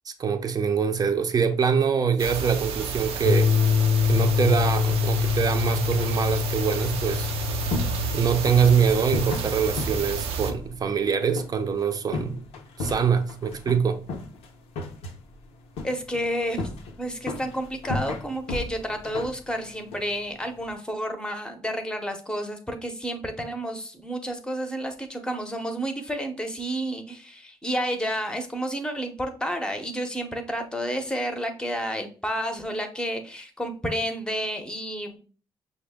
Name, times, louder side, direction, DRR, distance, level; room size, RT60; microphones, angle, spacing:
voice 1, 0.2-3.5 4.1-7.3 8.1-12.4 12.8-14.0, right 6 dB, 40° right, 0.6 m, -24 dB
sound 1, 2.2-10.5, right 5 dB, 85° right, 0.6 m, -31 dB
sound 2, 3.2-10.3, left 7 dB, 50° left, 0.7 m, -26 dB
sound 3, 7.3-20.7, left 3 dB, 85° left, 0.7 m, -36 dB
voice 2, 15.8-16.7 17.0-35.2, equal, 10° left, 0.8 m, -30 dB
5.9 x 2.1 x 3.5 m
cardioid pair, 85°, 10 cm